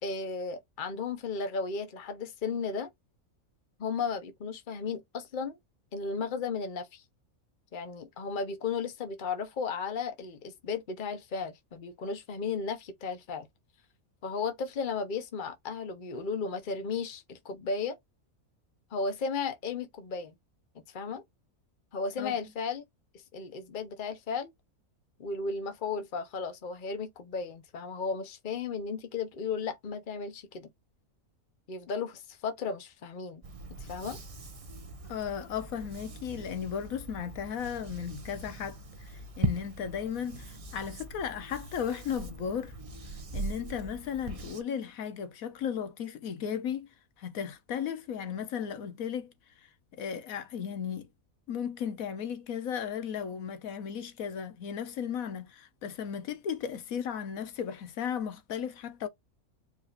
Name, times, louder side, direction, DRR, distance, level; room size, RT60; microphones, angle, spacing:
voice 1, 0.0-2.9 3.8-5.6 5.9-7.0 7.7-13.5 14.2-18.0 18.9-20.3 20.9-21.2 21.9-22.8 23.3-24.5 25.2-30.7 31.7-33.4 33.8-34.2, left 5 dB, 40° left, 0.9 m, -34 dB
sound 1, 33.4-44.6, right 2 dB, 35° right, 0.6 m, -40 dB
voice 2, 35.1-42.7 43.3-46.9 47.2-51.1 51.5-59.1, left 8 dB, 80° left, 1.2 m, -35 dB
5.0 x 2.8 x 2.4 m
omnidirectional pair, 1.5 m